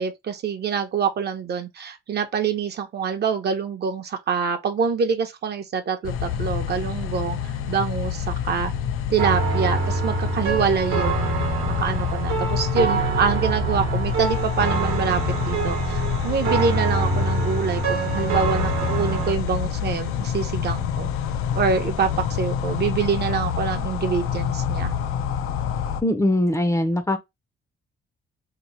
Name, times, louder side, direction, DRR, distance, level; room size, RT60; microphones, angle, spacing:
voice 1, 0.0-8.7 9.1-11.2 11.7-21.1 21.5-24.9, right 6 dB, 50° right, 0.7 m, -25 dB
sound 1, 6.0-26.0, left 9 dB, 90° left, 0.4 m, -27 dB
sound 2, 9.2-19.3, right 4 dB, 80° right, 0.9 m, -26 dB
voice 2, 26.0-27.2, left 1 dB, 15° left, 0.5 m, -21 dB
2.9 x 2.1 x 4.1 m
cardioid pair, 115°, 21 cm